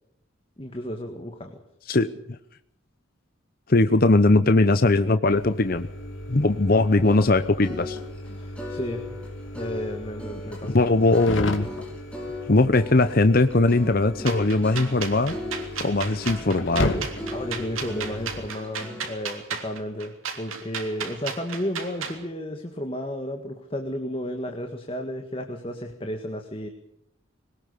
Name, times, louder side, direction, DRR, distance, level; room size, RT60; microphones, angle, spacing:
voice 1, 0.6-1.6 8.3-9.0 9.6-11.0 17.3-26.7, equal, 25° left, 4 dB, 1.8 m, -33 dB
voice 2, 3.7-5.9 6.3-8.0 10.6-11.7 12.5-15.4 15.8-16.9, left 2 dB, 45° left, 11 dB, 0.8 m, -20 dB
sound 1, 5.3-18.5, left 1 dB, 70° left, 2.7 m, -35 dB
sound 2, 7.0-19.1, left 2 dB, 5° left, 5.9 m, -39 dB
sound 3, 14.3-22.2, right 6 dB, 85° right, 3.3 m, -34 dB
22.0 x 19.5 x 6.7 m, 0.76 s
head